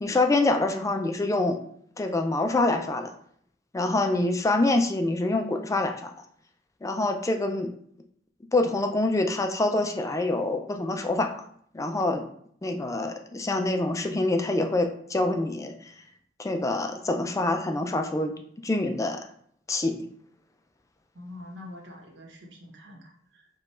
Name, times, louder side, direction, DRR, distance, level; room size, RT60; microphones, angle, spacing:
voice 1, 0.0-1.6 2.0-3.1 3.7-6.1 6.8-7.7 8.5-11.3 11.7-12.3 12.6-15.9 16.4-18.3 18.6-19.2 19.7-20.0, left 2 dB, 15° left, 5 dB, 0.4 m, -26 dB
voice 2, 21.1-23.5, left 1 dB, 80° right, 0 dB, 1.3 m, -45 dB
5.1 x 2.3 x 4.2 m, 0.64 s
head